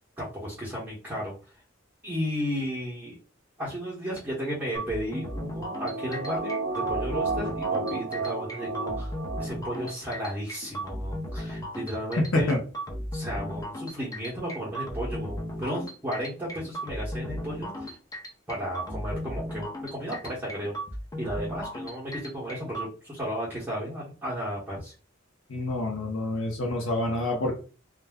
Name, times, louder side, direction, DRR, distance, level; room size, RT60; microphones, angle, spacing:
voice 1, 0.2-1.4 2.0-3.2 3.6-12.5 13.1-18.0 18.5-20.7 21.2-24.9, equal, 10° right, -8 dB, 0.8 m, -34 dB
sound 1, 4.7-22.9, equal, 20° left, 0.5 m, -36 dB
sound 2, 5.1-9.9 10.3-10.4, right 3 dB, 80° right, 0.5 m, -32 dB
voice 2, 25.5-27.5, left 2 dB, 75° left, -1 dB, 0.7 m, -27 dB
2.3 x 2.1 x 3.4 m, 0.36 s
head